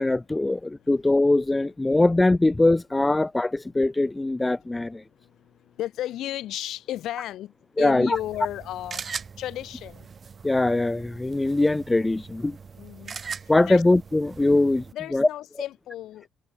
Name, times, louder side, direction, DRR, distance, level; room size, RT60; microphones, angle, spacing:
voice 1, 0.0-5.0 7.8-8.2 10.4-12.6 13.5-14.8 15.1-15.3, left 2 dB, 15° left, 0.6 m, -22 dB
voice 2, 5.8-9.0 9.4-10.1 12.8-13.2 13.6-13.8 14.9-16.3, left 13 dB, 65° left, 2.1 m, -33 dB
sound 1, 8.1-14.9, right 6 dB, 45° right, 1.7 m, -40 dB
hypercardioid pair, 45°, 0 cm